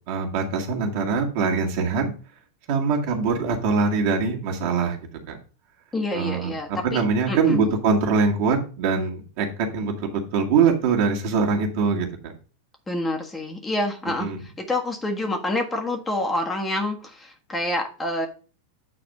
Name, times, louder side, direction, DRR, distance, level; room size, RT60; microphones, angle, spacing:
voice 1, 0.1-2.1 2.7-5.0 5.3-5.4 6.1-9.5 9.7-12.3 14.2-14.4, right 5 dB, 45° right, 1 dB, 1.9 m, -23 dB
voice 2, 5.9-7.0 7.3-7.7 12.9-14.3 14.6-18.3, left 1 dB, 15° left, 2 dB, 1.5 m, -27 dB
8.7 x 4.2 x 5.4 m, 0.36 s
figure-of-eight pair, 90°, 0 cm